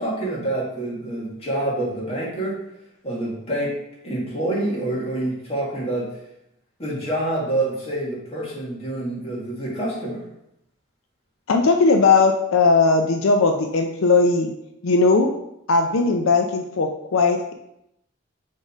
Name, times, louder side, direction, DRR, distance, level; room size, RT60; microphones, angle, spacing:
voice 1, 0.0-2.6 3.0-3.8 4.0-6.2 6.8-10.2, right 1 dB, 30° left, -4 dB, 1.9 m, -27 dB
voice 2, 11.5-14.5 14.8-15.3 15.7-17.5, left 4 dB, 80° left, 4 dB, 0.5 m, -18 dB
6.4 x 3.7 x 4.9 m, 0.80 s
head